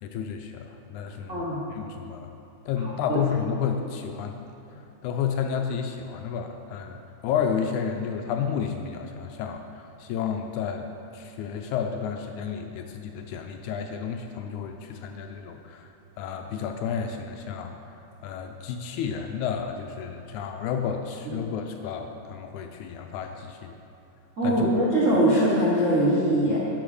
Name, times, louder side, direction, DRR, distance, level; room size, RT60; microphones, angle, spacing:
voice 1, 0.0-2.3 2.7-4.4 4.7-10.9 11.1-15.9 16.2-17.7 18.2-23.8 24.4-24.7, left 7 dB, 80° left, 5 dB, 1.8 m, -31 dB
voice 2, 1.3-1.6 2.8-3.2 21.3-21.4 24.4-26.6, right 1 dB, 75° right, -7 dB, 0.7 m, -22 dB
10.0 x 6.1 x 4.9 m, 2.7 s
omnidirectional pair, 3.7 m